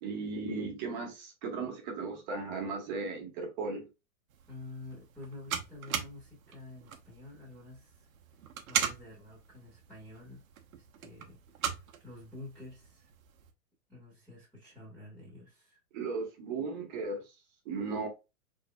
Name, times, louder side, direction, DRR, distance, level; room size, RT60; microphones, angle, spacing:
voice 1, 0.0-3.9 15.9-17.3 17.6-18.1, right 4 dB, 30° right, 1.3 m, -36 dB
sound 1, 4.3-13.5, right 8 dB, 70° right, 1.1 m, -40 dB
voice 2, 4.5-8.1 8.7-10.4 10.7-13.1 13.9-15.8, left 2 dB, ahead, 1.3 m, -49 dB
4.3 x 3.8 x 2.2 m
supercardioid pair, 165°, 43 cm